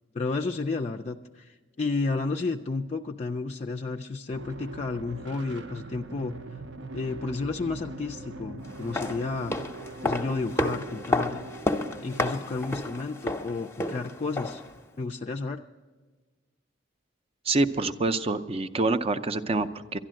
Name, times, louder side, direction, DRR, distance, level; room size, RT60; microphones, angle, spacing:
voice 1, 0.1-6.4 6.9-9.6 10.0-11.4 12.0-14.6 15.0-15.6, left 3 dB, 35° left, 3 dB, 0.4 m, -32 dB
sound 1, 4.3-13.2, right 2 dB, 75° right, 0.7 m, -42 dB
sound 2, 8.7-14.7 15.0-15.1, left 2 dB, 15° left, 0.7 m, -31 dB
voice 2, 17.4-20.0, right 3 dB, 30° right, 11 dB, 0.5 m, -26 dB
11.5 x 11.5 x 7.5 m, 1.3 s
head